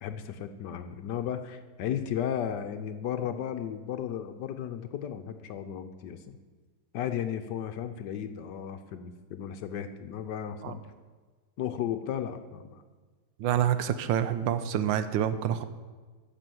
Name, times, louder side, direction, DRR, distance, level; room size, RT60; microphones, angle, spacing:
voice 1, 0.0-6.4 6.9-10.8 11.6-12.8, left 9 dB, 70° left, 8 dB, 1.2 m, -34 dB
voice 2, 13.4-15.6, right 10 dB, 75° right, 12 dB, 1.3 m, -27 dB
9.8 x 6.9 x 7.7 m, 1.4 s
omnidirectional pair, 2.1 m